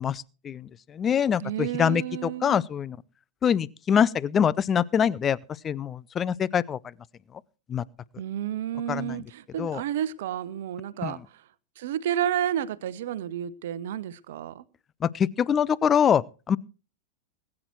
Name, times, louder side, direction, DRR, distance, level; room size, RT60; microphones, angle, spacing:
voice 1, 0.0-3.0 3.4-5.4 5.6-6.8 7.7-7.8 8.9-9.2 9.6-9.8 11.0-11.1 15.0-16.6, left 8 dB, 25° left, 0.6 m, -24 dB
voice 2, 1.4-2.6 8.2-11.4 11.8-14.7, right 10 dB, 55° right, 1.0 m, -31 dB
20.5 x 9.8 x 4.6 m
figure-of-eight pair, 90°, 0 cm